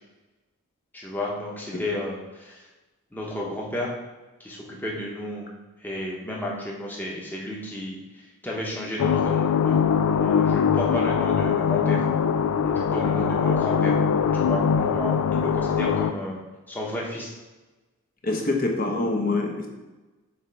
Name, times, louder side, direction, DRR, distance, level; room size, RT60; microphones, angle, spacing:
voice 1, 0.9-2.7 3.1-3.9 4.4-5.5 5.8-9.8 10.2-12.0 12.6-14.0 14.3-16.4 16.7-17.3, left 1 dB, 10° left, -3 dB, 0.9 m, -32 dB
sound 1, 9.0-16.1, left 7 dB, 85° left, 0.3 m, -22 dB
voice 2, 18.2-19.7, left 2 dB, 40° left, 1 dB, 0.8 m, -25 dB
7.2 x 3.1 x 4.5 m, 1.2 s
head